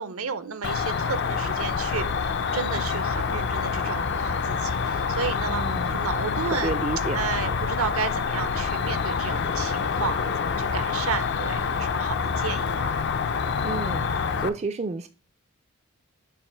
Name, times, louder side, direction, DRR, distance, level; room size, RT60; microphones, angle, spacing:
voice 1, 0.0-6.7 7.1-12.9, right 6 dB, 75° right, 0.7 m, -32 dB
Cricket, 0.6-14.5, left 5 dB, 50° left, 0.5 m, -27 dB
voice 2, 5.5-6.0 6.6-7.2 13.6-14.1 14.4-15.1, right 3 dB, 30° right, 0.4 m, -30 dB
7.2 x 2.9 x 5.6 m
head